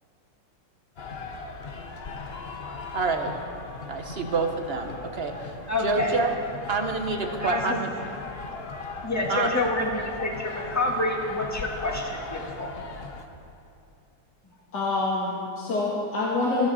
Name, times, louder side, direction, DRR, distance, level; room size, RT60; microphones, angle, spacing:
sound 1, 1.0-13.3, left 4 dB, 40° left, 1.0 m, -38 dB
voice 1, 2.9-3.3 3.9-5.5 5.8-6.4 6.7-7.9 9.3-9.5, right 4 dB, 40° right, 4 dB, 1.1 m, -27 dB
voice 2, 5.7-6.2 7.4-7.7 9.0-12.7, left 2 dB, 10° left, -1 dB, 1.8 m, -28 dB
voice 3, 14.7-16.7, left 3 dB, 65° left, -5 dB, 2.4 m, -26 dB
27.0 x 9.6 x 4.2 m, 2.8 s
omnidirectional pair, 1.9 m